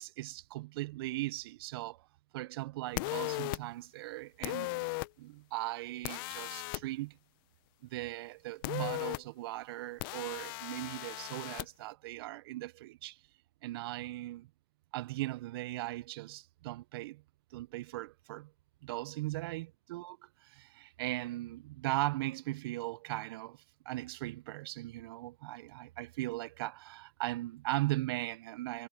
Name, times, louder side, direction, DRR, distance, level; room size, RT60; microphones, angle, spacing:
voice 1, 0.0-2.0 2.3-4.9 5.2-7.2 7.9-13.2 13.6-14.5 14.9-17.2 17.5-18.5 18.8-28.9, right 18 dB, 60° right, 0.8 m, -38 dB
sound 1, 3.0-3.6 4.4-5.1 6.0-6.8 8.6-9.2 10.0-11.7, left 24 dB, 55° left, 0.8 m, -37 dB
hypercardioid pair, 120°, 14 cm